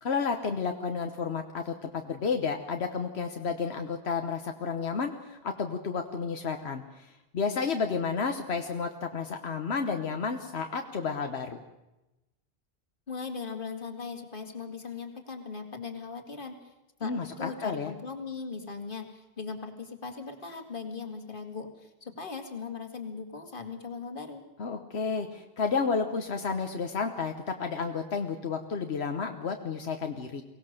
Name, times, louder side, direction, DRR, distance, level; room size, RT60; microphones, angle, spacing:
voice 1, 0.0-11.6 17.0-17.9 24.6-30.4, left 5 dB, 85° left, 5 dB, 1.3 m, -31 dB
voice 2, 13.1-16.7 17.0-24.4, left 5 dB, 55° left, 4 dB, 2.3 m, -39 dB
23.0 x 18.0 x 6.6 m, 0.98 s
omnidirectional pair, 1.1 m